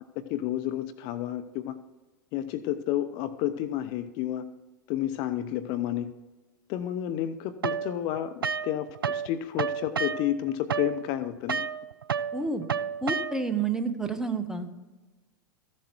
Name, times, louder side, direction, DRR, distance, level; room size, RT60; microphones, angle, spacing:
voice 1, 0.2-1.8 2.3-4.5 4.9-6.1 6.7-11.7, left 12 dB, 40° left, 10 dB, 0.6 m, -31 dB
sound 1, 7.6-9.3 9.6-13.6, right 6 dB, 80° right, 0.4 m, -31 dB
voice 2, 12.3-12.6 13.0-14.7, right 4 dB, 5° right, 7 dB, 1.0 m, -29 dB
14.0 x 7.5 x 4.5 m, 1.2 s
figure-of-eight pair, 95°, 12 cm